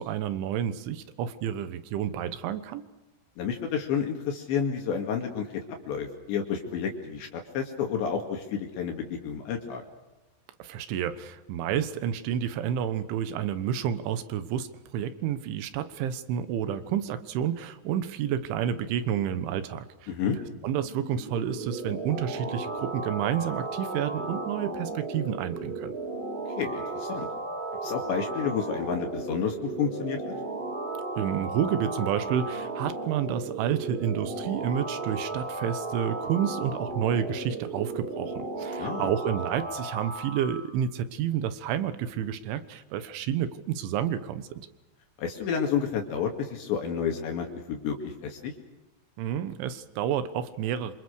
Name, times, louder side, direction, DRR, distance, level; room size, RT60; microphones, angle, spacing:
voice 1, 0.0-2.8 10.6-20.1 20.6-26.0 31.2-44.7 49.2-50.9, right 9 dB, 75° right, 12 dB, 3.7 m, -30 dB
voice 2, 3.4-9.8 20.1-20.4 26.6-27.3 27.8-30.3 38.8-39.1 45.2-48.5, left 7 dB, 65° left, 3 dB, 4.2 m, -30 dB
sound 1, 20.7-40.6, right 3 dB, 25° right, 5.0 m, -35 dB
27.0 x 26.0 x 6.5 m, 1.0 s
omnidirectional pair, 5.6 m